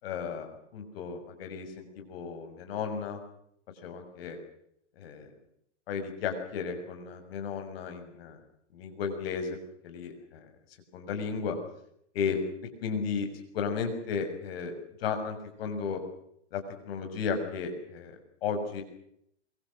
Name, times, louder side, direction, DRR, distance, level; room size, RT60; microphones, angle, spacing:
voice 1, 0.0-3.2 3.8-4.4 5.0-5.3 5.9-8.4 8.7-9.6 9.8-10.5 10.9-11.6 12.1-12.4 12.8-13.3 13.5-14.7 15.0-16.0 16.5-18.8, left 6 dB, 50° left, 7 dB, 6.7 m, -34 dB
26.0 x 24.5 x 6.5 m, 0.72 s
hypercardioid pair, 150°, 37 cm